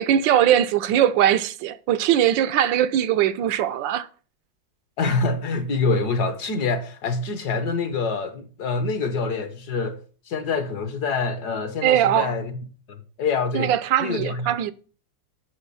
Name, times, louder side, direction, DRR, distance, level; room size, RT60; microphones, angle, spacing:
voice 1, 0.0-4.1 11.8-12.4 13.5-14.7, right 11 dB, 80° right, 1.3 m, -20 dB
voice 2, 5.0-10.0 10.3-12.5 12.9-13.7 14.0-14.6, left 4 dB, 60° left, 1.6 m, -26 dB
8.1 x 6.1 x 6.8 m
omnidirectional pair, 2.0 m